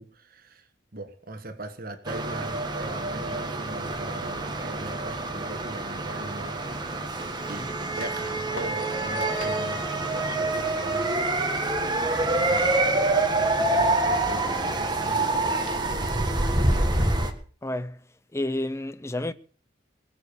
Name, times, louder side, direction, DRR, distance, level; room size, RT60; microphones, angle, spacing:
voice 1, 0.0-6.7 7.5-11.1 12.1-12.7 13.3-17.1, right 2 dB, 50° right, 1.5 m, -40 dB
sound 1, 2.0-17.3, right 2 dB, 20° right, 1.5 m, -26 dB
sound 2, 8.0-9.7 12.0-12.9 13.2-13.5 14.1-14.7 15.0-15.1 15.6-16.6, left 3 dB, 85° left, 1.9 m, -45 dB
voice 2, 17.6-18.0 18.3-19.3, left 1 dB, 15° left, 0.6 m, -30 dB
21.0 x 7.1 x 7.0 m
head